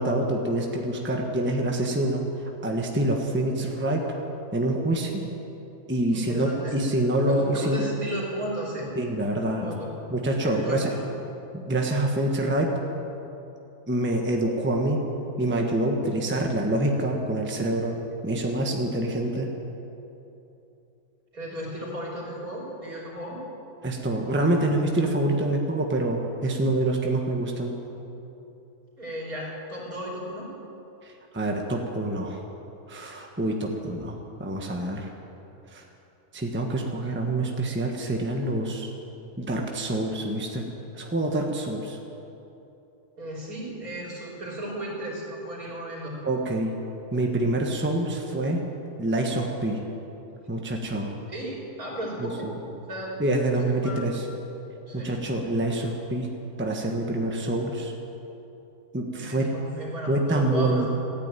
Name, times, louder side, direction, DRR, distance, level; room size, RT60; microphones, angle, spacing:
voice 1, 0.0-2.3 2.6-4.1 4.5-5.2 5.9-7.8 9.0-9.7 10.1-10.9 11.5-12.7 13.9-15.0 15.4-18.0 18.2-19.5 23.8-27.7 31.0-32.4 32.9-35.1 35.7-35.8 36.3-38.9 39.4-40.7 40.9-42.0 46.2-46.7 47.1-48.6 49.0-49.8 50.5-51.1 52.2-52.5 53.2-54.2 54.9-56.3 56.6-57.9 58.9-59.5 60.1-60.9, right 1 dB, 10° right, 1 dB, 1.1 m, -26 dB
voice 2, 6.1-6.8 7.3-8.9 9.5-9.9 10.4-11.0 21.3-23.4 29.0-30.5 43.2-46.2 51.3-51.5 51.8-52.5 52.9-53.2 53.5-54.0 54.9-55.1 59.1-60.9, right 1 dB, 70° right, -5 dB, 4.1 m, -34 dB
14.5 x 9.9 x 9.1 m, 2.9 s
omnidirectional pair, 1.6 m